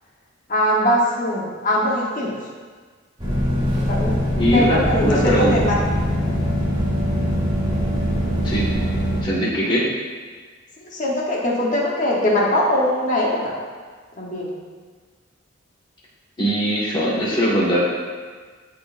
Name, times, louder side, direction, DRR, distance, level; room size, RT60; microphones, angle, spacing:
voice 1, 0.5-2.5 3.9-4.1 4.5-5.8 10.8-13.5 14.2-14.5, left 1 dB, 40° left, -4 dB, 1.0 m, -21 dB
sound 1, 3.2-9.2, equal, 25° right, 1.5 m, -22 dB
voice 2, 4.3-5.5 8.4-8.7 9.2-9.9 16.4-17.8, equal, 25° left, -7 dB, 1.5 m, -20 dB
12.0 x 4.2 x 2.5 m, 1.5 s
head